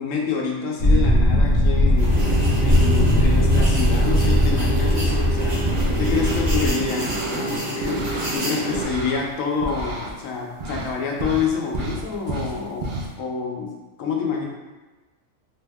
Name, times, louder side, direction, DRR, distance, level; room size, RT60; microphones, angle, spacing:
voice 1, 0.0-2.2 2.6-5.6 6.0-14.5, left 5 dB, 70° left, -1 dB, 1.0 m, -27 dB
sound 1, 0.8-6.7, left 1 dB, 50° left, 0.6 m, -19 dB
sound 2, 2.0-8.8, right 2 dB, 40° right, 0.7 m, -28 dB
sound 3, 5.6-6.4 6.8-8.4 8.7-10.1 10.6-10.9 11.2-13.1, right 2 dB, 75° right, 0.4 m, -31 dB
3.4 x 2.1 x 3.4 m, 1.2 s
omnidirectional pair, 1.4 m